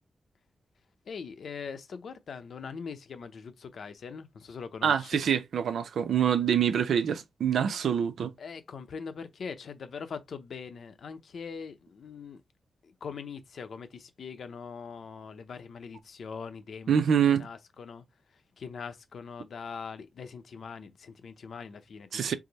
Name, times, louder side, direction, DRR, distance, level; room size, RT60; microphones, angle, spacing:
voice 1, 1.1-5.3 8.4-12.4 12.8-17.0 17.3-22.4, left 5 dB, 70° left, 0.8 m, -42 dB
voice 2, 4.8-8.3 16.9-17.5 22.1-22.3, right 8 dB, 85° right, 0.6 m, -25 dB
4.8 x 2.1 x 4.0 m
wide cardioid pair, 100°, 0 cm